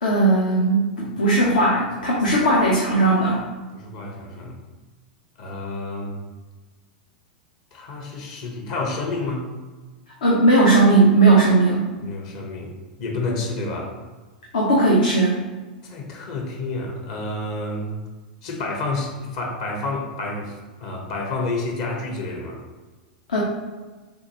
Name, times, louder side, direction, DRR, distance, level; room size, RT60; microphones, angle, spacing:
voice 1, 0.0-3.4 10.2-11.8 14.5-15.4 23.3-23.4, right 2 dB, 70° left, -4 dB, 1.0 m, -17 dB
voice 2, 3.7-4.5 5.4-6.2 7.7-9.5 12.0-13.9 15.8-17.9 18.4-20.5 20.8-22.6, left 2 dB, 50° left, 1 dB, 1.2 m, -29 dB
6.7 x 2.7 x 3.0 m, 1.3 s
figure-of-eight pair, 90°, 5 cm